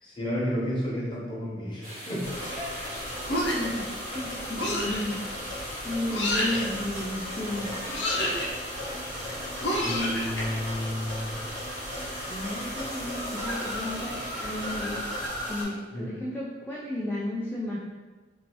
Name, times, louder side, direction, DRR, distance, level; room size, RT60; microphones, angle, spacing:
voice 1, 0.0-2.3 9.8-11.4 15.9-16.1, equal, 25° left, -7 dB, 0.9 m, -31 dB
sound 1, 1.8-15.3, equal, 15° right, 1.3 m, -41 dB
sound 2, 2.2-15.6, left 1 dB, 30° right, 1.4 m, -36 dB
voice 2, 3.1-7.7 12.2-15.1 15.5-17.8, left 1 dB, 10° left, -6 dB, 0.3 m, -34 dB
sound 3, 3.3-3.8 4.6-5.0 6.1-6.6 7.9-8.5 9.6-10.4, left 1 dB, 70° left, 0.7 m, -28 dB
2.9 x 2.6 x 2.9 m, 1.4 s
head